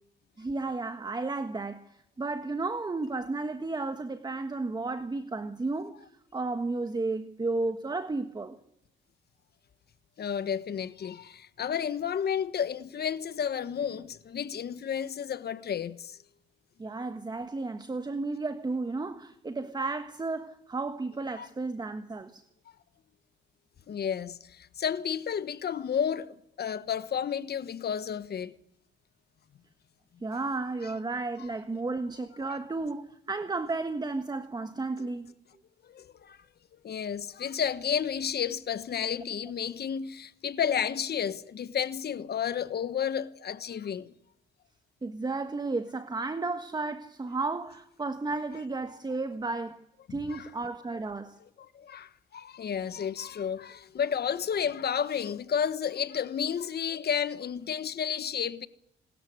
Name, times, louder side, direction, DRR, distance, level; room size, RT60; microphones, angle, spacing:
voice 1, 0.4-6.0 6.3-8.6 16.8-22.4 30.2-35.3 45.0-49.8 50.1-51.4, right 3 dB, 20° right, 1.4 m, -33 dB
voice 2, 10.2-16.2 21.4-21.5 23.9-28.5 35.9-36.4 36.8-44.1 50.1-50.5 51.6-58.7, left 8 dB, 55° left, 1.2 m, -32 dB
25.5 x 13.5 x 9.6 m
cardioid pair, 90°, 20 cm